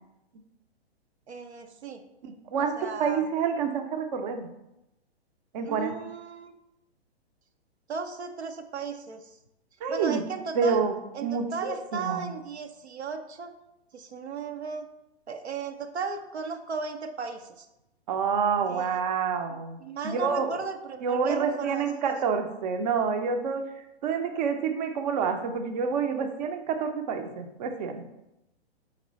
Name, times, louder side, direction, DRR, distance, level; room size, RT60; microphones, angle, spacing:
voice 1, 1.3-2.0 2.5-3.3 5.7-6.6 7.9-9.3 9.9-10.8 11.1-13.5 13.9-14.9 15.3-17.7 18.6-19.0 19.8-22.1, right 5 dB, 90° right, 6 dB, 0.5 m, -36 dB
voice 2, 2.2-2.7 3.0-4.5 5.5-5.9 9.8-10.2 10.5-12.3 18.1-19.8 20.0-20.5 21.0-23.6 24.0-28.0, right 6 dB, 45° right, 6 dB, 0.5 m, -28 dB
4.1 x 2.9 x 3.9 m, 0.90 s
figure-of-eight pair, 120°, 32 cm